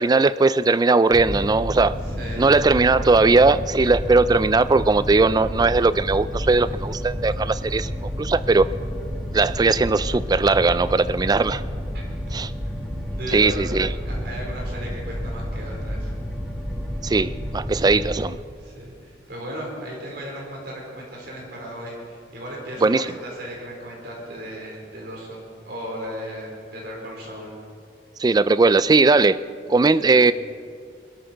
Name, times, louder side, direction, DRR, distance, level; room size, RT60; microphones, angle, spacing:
voice 1, 0.0-2.0 2.4-7.9 8.2-8.7 9.3-11.6 12.3-12.5 13.3-13.9 17.0-18.4 22.8-23.1 28.2-29.4 29.7-30.3, right 3 dB, 20° right, 15 dB, 0.3 m, -18 dB
sound 1, 1.1-18.1, equal, ahead, 1.6 m, -30 dB
voice 2, 2.0-2.6 11.9-12.0 13.2-16.1 18.6-27.5 30.0-30.2, equal, 60° right, -2 dB, 4.4 m, -36 dB
21.5 x 13.0 x 4.5 m, 2.3 s
head